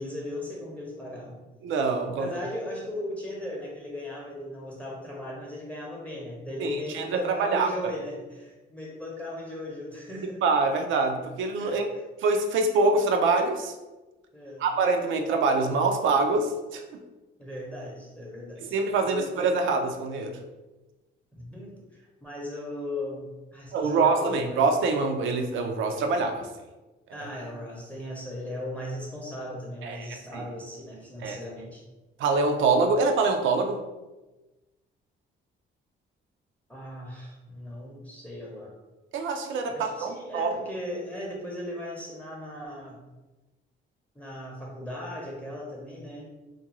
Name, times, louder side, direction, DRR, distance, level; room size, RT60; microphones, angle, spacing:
voice 1, 0.0-1.4 2.2-10.4 11.6-11.8 14.3-14.6 17.4-19.3 21.4-21.7 22.2-24.6 27.1-31.8 36.7-38.7 39.7-43.0 44.1-46.3, left 1 dB, 5° left, -3 dB, 0.6 m, -37 dB
voice 2, 1.6-2.3 6.6-7.7 10.4-11.9 12.2-13.7 14.6-16.8 18.6-20.4 23.7-26.5 29.8-30.4 31.2-31.4 32.2-33.8 39.1-40.5, right 3 dB, 75° right, 5 dB, 0.4 m, -25 dB
2.4 x 2.2 x 2.9 m, 1.1 s
cardioid pair, 90°, 20 cm